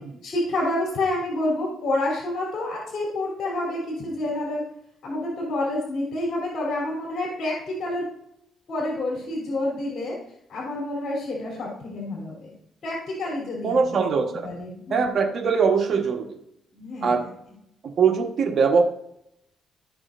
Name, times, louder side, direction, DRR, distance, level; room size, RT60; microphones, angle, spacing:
voice 1, 0.2-4.6 5.0-8.0 8.7-10.1 10.5-12.5 12.8-14.2 14.4-15.1 16.7-17.3, left 1 dB, 60° left, -4 dB, 3.2 m, -28 dB
voice 2, 13.6-14.5 14.9-16.2 17.0-17.2 18.0-18.8, right 5 dB, 55° right, 3 dB, 1.2 m, -21 dB
13.5 x 6.1 x 2.5 m, 0.76 s
cardioid pair, 90°, 0 cm